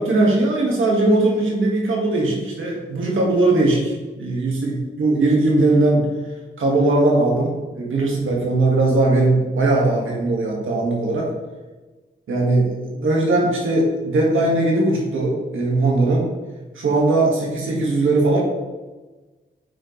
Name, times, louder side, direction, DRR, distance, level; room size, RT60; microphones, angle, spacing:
voice 1, 0.0-6.1 6.6-11.3 12.3-16.2 16.8-18.4, right 2 dB, 75° right, -2 dB, 2.0 m, -19 dB
8.9 x 4.5 x 3.3 m, 1.2 s
supercardioid pair, 40°, 21 cm